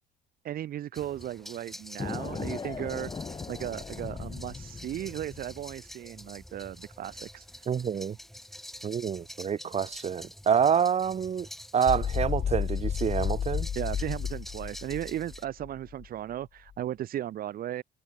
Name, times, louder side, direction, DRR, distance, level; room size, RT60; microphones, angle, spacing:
voice 1, 0.4-3.1 3.5-7.6 13.7-17.8, right 12 dB, 60° right, 1.8 m, -36 dB
sound 1, 0.9-15.4, equal, ahead, 6.5 m, -47 dB
sound 2, 2.0-5.7, left 5 dB, 25° left, 3.9 m, -38 dB
voice 2, 7.7-8.2 8.8-11.5 11.7-13.7, right 7 dB, 40° right, 2.5 m, -27 dB
sound 3, 11.9-16.1, left 8 dB, 45° left, 3.4 m, -31 dB
cardioid pair, 110°, 17 cm